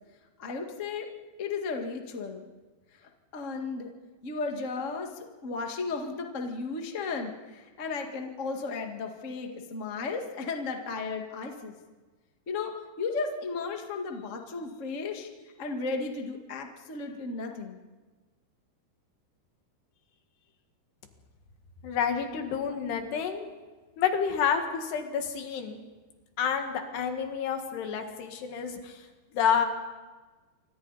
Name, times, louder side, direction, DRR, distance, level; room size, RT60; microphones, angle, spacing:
voice 1, 0.4-1.1 1.4-2.5 3.3-3.9 4.2-11.7 12.5-15.3 15.6-17.8, left 4 dB, 55° left, 3 dB, 0.8 m, -34 dB
voice 2, 21.8-23.5 24.0-25.8 26.4-29.1 29.3-29.7, left 7 dB, 75° left, 5 dB, 3.9 m, -29 dB
28.0 x 24.5 x 4.1 m, 1.3 s
omnidirectional pair, 4.9 m